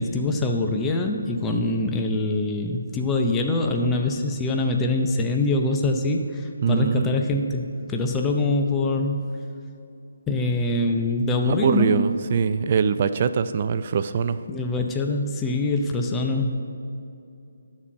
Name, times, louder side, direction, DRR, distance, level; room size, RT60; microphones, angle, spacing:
voice 1, 0.0-7.6 7.9-9.3 10.3-12.1 14.5-16.6, left 2 dB, 10° left, 2 dB, 0.6 m, -24 dB
voice 2, 6.6-7.1 11.4-14.4, right 6 dB, 40° right, 11 dB, 0.4 m, -23 dB
12.5 x 4.3 x 7.2 m, 2.7 s
hypercardioid pair, 160°, 0 cm